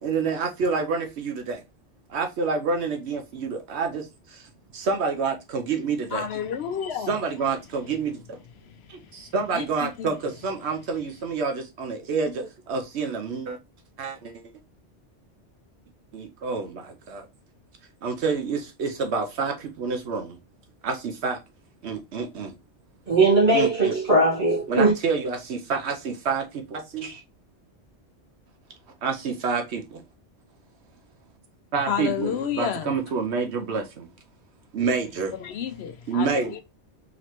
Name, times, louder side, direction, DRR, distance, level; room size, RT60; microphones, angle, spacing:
voice 1, 0.0-1.6 2.1-4.4 4.7-6.2 7.1-8.4 8.9-13.6 14.0-14.4 16.1-17.2 18.0-20.4 20.8-21.4 21.8-22.5 23.5-23.9 24.7-27.2 29.0-30.0 31.7-34.1 34.7-35.3 36.1-36.6, right 5 dB, 70° right, 0.9 m, -28 dB
voice 2, 6.1-7.1 8.6-9.2 9.5-9.6 10.0-10.1 31.9-32.9 35.4-36.6, left 8 dB, 70° left, 0.8 m, -30 dB
voice 3, 23.1-24.9, right 2 dB, 50° right, 1.8 m, -19 dB
4.0 x 3.1 x 2.9 m
omnidirectional pair, 1.2 m